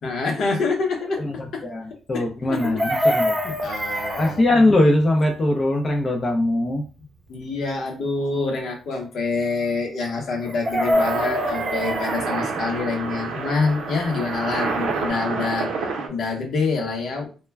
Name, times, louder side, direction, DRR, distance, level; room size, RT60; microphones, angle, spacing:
voice 1, 0.0-1.2 1.5-1.6 2.1-3.2 3.4-4.6 7.3-15.7 16.1-17.3, left 4 dB, 65° left, 1 dB, 0.8 m, -26 dB
voice 2, 1.2-3.5 4.2-6.8, left 1 dB, 30° left, 1 dB, 0.5 m, -21 dB
Chicken rooster, 2.5-4.3 10.4-12.2 14.5-14.6 14.8-15.1, equal, 25° right, 0.7 m, -24 dB
sound 1, 10.9-16.1, right 4 dB, 75° right, 0.6 m, -28 dB
2.2 x 2.1 x 3.2 m, 0.36 s
cardioid pair, 90°, 0 cm